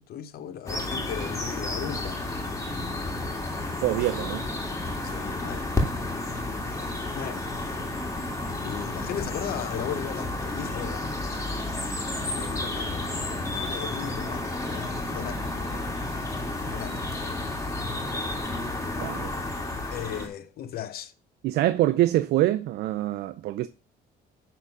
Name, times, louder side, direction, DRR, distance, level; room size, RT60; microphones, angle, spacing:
voice 1, 0.1-2.2 5.0-5.7 7.1-7.5 8.6-11.1 12.1-13.0 13.4-15.7 16.7-17.4 19.9-21.1, left 10 dB, 65° left, 0.9 m, -37 dB
sound 1, 0.7-20.3, left 2 dB, 15° left, 2.1 m, -31 dB
voice 2, 3.8-4.5 19.0-19.3 21.4-23.7, right 15 dB, 75° right, 0.5 m, -25 dB
10.5 x 3.8 x 5.5 m
cardioid pair, 110°, 17 cm